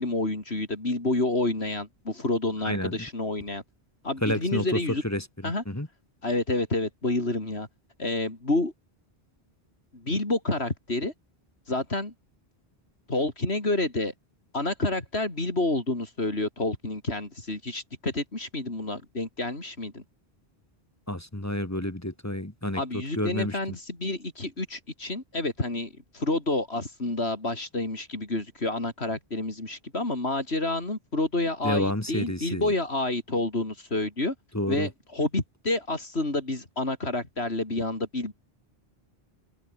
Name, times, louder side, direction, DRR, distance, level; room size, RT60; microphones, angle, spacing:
voice 1, 0.0-3.6 4.0-5.0 5.4-5.6 6.2-7.7 8.0-8.7 9.9-11.1 11.7-12.1 13.1-14.1 14.5-20.0 22.7-34.3 34.7-38.3, left 2 dB, 85° left, 4.8 m, -29 dB
voice 2, 4.2-5.9 21.1-22.8 23.1-23.6 31.6-32.7 34.5-34.9, left 1 dB, 15° left, 1.7 m, -29 dB
omnidirectional pair, 1.1 m